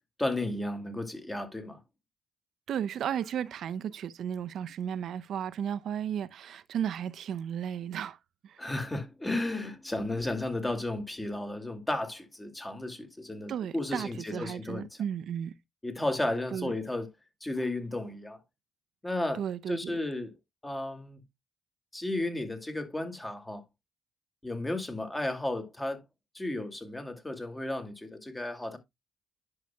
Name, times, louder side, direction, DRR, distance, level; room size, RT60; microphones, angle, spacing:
voice 1, 0.2-1.8 8.6-14.9 15.8-17.1 17.4-18.4 19.0-20.3 20.6-21.2 21.9-23.6 24.4-26.0 26.3-28.8, left 2 dB, 20° left, 2.2 m, -33 dB
voice 2, 2.7-8.2 8.4-8.7 13.5-15.5 16.5-16.7 19.3-20.0, right 9 dB, 70° right, 0.6 m, -34 dB
10.5 x 5.7 x 2.2 m
supercardioid pair, 55°, 0 cm